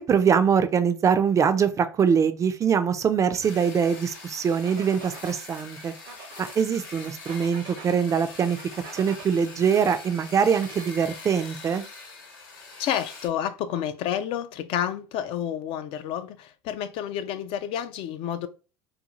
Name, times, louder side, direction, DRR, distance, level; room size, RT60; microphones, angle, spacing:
voice 1, 0.0-5.9 6.4-8.6 8.9-11.8, right 7 dB, 30° right, 0.3 m, -23 dB
sound 1, 3.3-3.4 4.6-5.4 6.1-6.5 7.2-8.0 8.6-9.3 10.4-11.2, right 5 dB, 75° right, 0.8 m, -44 dB
sound 2, 3.4-13.3, left 3 dB, 85° left, 0.9 m, -43 dB
voice 2, 12.8-18.5, left 10 dB, 55° left, 0.4 m, -30 dB
2.5 x 2.4 x 2.9 m
hypercardioid pair, 85°, 11 cm